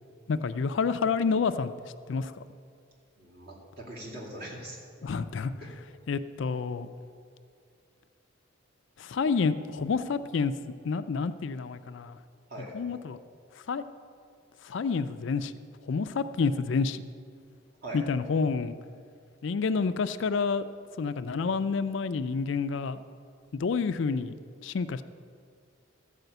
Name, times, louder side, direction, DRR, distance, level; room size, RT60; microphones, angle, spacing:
voice 1, 0.3-1.7 2.1-2.3 5.0-5.5 6.1-6.9 9.0-10.5 10.8-12.2 12.7-13.2 13.7-13.8 14.6-15.5 15.8-17.0 17.9-18.7 19.4-20.7 21.0-23.0 23.5-24.4 24.6-25.0, left 5 dB, 60° left, 12 dB, 0.4 m, -28 dB
voice 2, 3.2-4.8 5.6-5.7 12.5-12.7 17.8-18.0, right 1 dB, 50° right, -3 dB, 2.4 m, -41 dB
13.5 x 4.9 x 7.9 m, 2.3 s
head